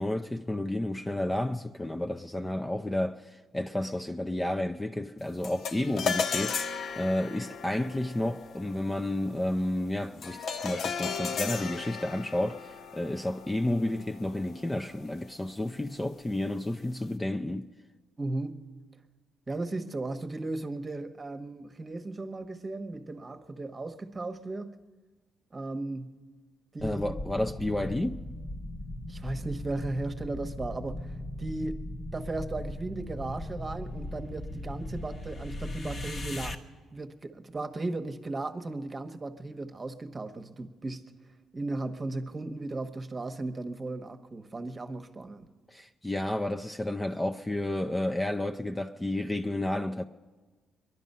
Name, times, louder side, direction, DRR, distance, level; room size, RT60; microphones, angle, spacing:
voice 1, 0.0-17.7 26.8-28.2 45.7-50.0, left 1 dB, 15° left, 0.5 m, -31 dB
sound 1, 5.4-14.9, left 6 dB, 60° left, 0.7 m, -36 dB
voice 2, 18.2-18.7 19.5-24.7 25.5-26.2 26.7-27.2 29.1-31.1 31.4-31.8 32.1-36.6 36.9-41.1 41.5-45.5, right 2 dB, 25° right, 1.1 m, -36 dB
sound 2, 26.8-36.6, left 1 dB, 45° left, 1.1 m, -38 dB
23.5 x 11.0 x 5.5 m
cardioid pair, 90°, 0 cm